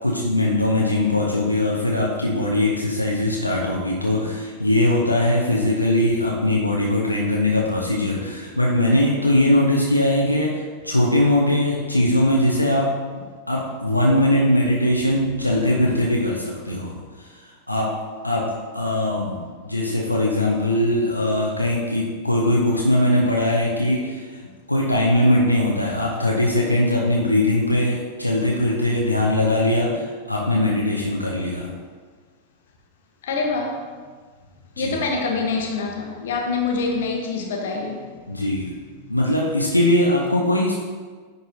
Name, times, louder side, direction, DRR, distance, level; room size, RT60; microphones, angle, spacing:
voice 1, 0.0-12.9 13.5-17.9 18.2-18.5 18.7-24.4 24.7-31.7 34.8-35.0 38.3-38.7 39.1-40.7, left 1 dB, 85° left, -3 dB, 0.7 m, -21 dB
voice 2, 33.2-33.8 34.8-37.9, left 4 dB, 60° left, 1 dB, 1.0 m, -25 dB
10.0 x 4.0 x 2.7 m, 1.5 s
figure-of-eight pair, 90°, 0 cm